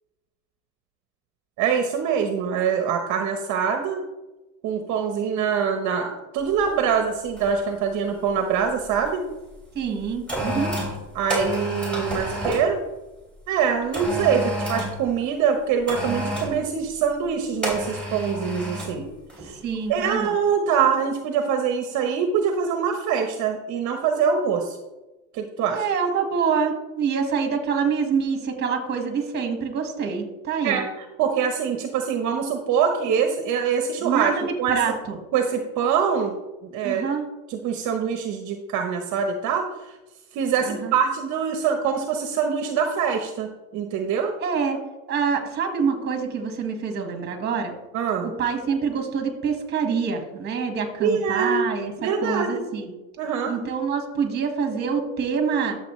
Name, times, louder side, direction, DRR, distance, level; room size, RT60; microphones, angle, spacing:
voice 1, 1.6-4.0 4.6-9.2 11.1-12.8 13.5-19.1 19.4-19.5 19.9-24.8 25.3-25.8 30.6-34.3 34.6-34.8 35.3-37.2 37.5-40.0 40.3-44.4 47.9-48.3 51.0-51.7 52.0-52.6 53.2-53.6, right 7 dB, 45° right, 5 dB, 1.0 m, -24 dB
sound 1, 6.5-6.7 7.4-7.7 7.9-9.1 9.8-12.7 13.9-15.0 15.9-16.6 17.6-19.0 19.3-19.5, right 1 dB, ahead, 3.6 m, -30 dB
voice 2, 9.7-10.7 14.3-14.4 19.5-20.4 25.7-30.8 34.0-35.2 36.8-37.3 40.6-40.9 44.4-44.8 45.1-47.7 48.2-51.9 52.2-52.9 53.5-55.8, right 6 dB, 25° right, 5 dB, 1.6 m, -26 dB
12.0 x 7.2 x 3.2 m, 1.1 s
cardioid pair, 150°, 39 cm